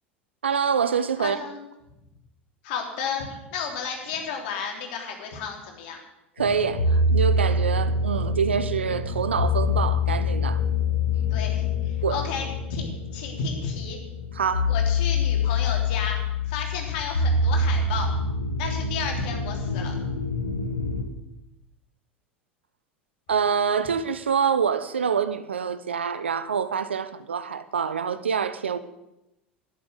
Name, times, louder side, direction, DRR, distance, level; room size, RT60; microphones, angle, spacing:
voice 1, 0.4-1.4 6.4-10.6 12.0-12.2 14.3-14.7 23.3-28.8, right 6 dB, 75° right, 0.8 m, -26 dB
voice 2, 1.2-1.6 2.6-6.0 11.3-14.0 14.7-16.2 16.5-18.1 18.6-19.9, left 5 dB, 55° left, 3.4 m, -32 dB
sound 1, 6.4-21.0, left 3 dB, 80° left, 1.5 m, -25 dB
11.5 x 10.5 x 8.1 m
figure-of-eight pair, 75°, 6 cm